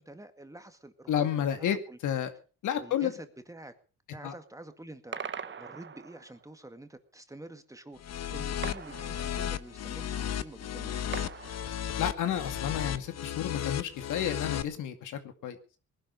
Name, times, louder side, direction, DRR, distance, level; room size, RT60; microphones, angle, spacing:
voice 1, 0.0-1.3 1.6-2.0 2.8-3.7 4.1-11.4, right 1 dB, 10° right, 8 dB, 2.0 m, -48 dB
voice 2, 1.1-1.8 2.0-2.3 2.6-3.1 4.2-4.3 12.0-15.6, left 9 dB, 80° left, 8 dB, 2.3 m, -31 dB
sound 1, 5.1-6.5 8.6-9.8 11.1-12.3, right 7 dB, 40° right, 1.1 m, -42 dB
sound 2, 8.0-14.6, left 9 dB, 60° left, 1.1 m, -34 dB
20.0 x 11.5 x 5.4 m, 0.37 s
cardioid pair, 90°, 30 cm